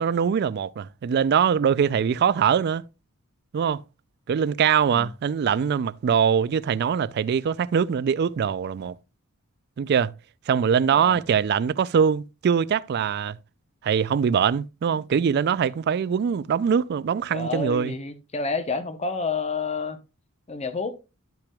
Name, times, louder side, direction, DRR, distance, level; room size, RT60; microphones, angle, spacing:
voice 1, 0.0-2.8 3.5-3.8 4.3-9.0 9.8-10.1 10.5-13.4 13.8-18.0, right 7 dB, 50° right, 0.3 m, -22 dB
voice 2, 10.9-11.2 14.9-15.0 17.3-20.0 20.5-21.0, left 4 dB, 30° left, 0.8 m, -29 dB
11.5 x 5.8 x 2.3 m
head